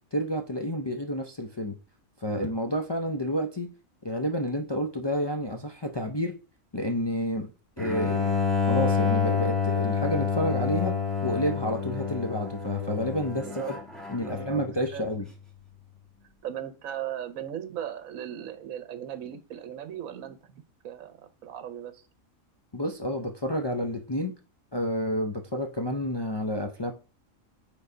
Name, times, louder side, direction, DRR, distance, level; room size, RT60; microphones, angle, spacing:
voice 1, 0.1-1.8 2.2-3.7 4.0-6.4 6.7-7.5 7.8-8.3 8.7-10.9 11.2-13.8 14.1-15.3 22.7-24.3 24.7-26.9, equal, 40° left, 0.3 m, -30 dB
Bowed string instrument, 7.8-14.8, left 5 dB, ahead, 1.3 m, -28 dB
voice 2, 14.2-14.6 14.9-15.1 16.4-22.0, right 10 dB, 75° right, 1.2 m, -38 dB
6.8 x 3.9 x 5.0 m
omnidirectional pair, 1.4 m